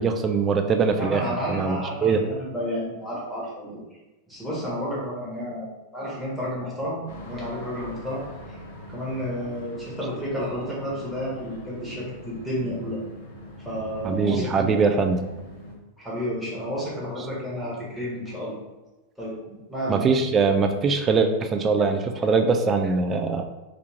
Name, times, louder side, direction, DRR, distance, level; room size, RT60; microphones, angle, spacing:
voice 1, 0.0-1.2 1.5-2.2 14.0-15.3 19.9-23.4, right 4 dB, 25° right, 5 dB, 0.3 m, -22 dB
voice 2, 1.0-3.8 4.3-8.2 8.5-8.6 8.9-13.0 13.6-14.7 16.0-18.6 19.2-20.1, equal, 5° right, -7 dB, 1.2 m, -31 dB
sound 1, 7.1-15.7, left 1 dB, 60° left, 0.8 m, -42 dB
3.4 x 2.4 x 3.0 m, 1.1 s
figure-of-eight pair, 90°, 0 cm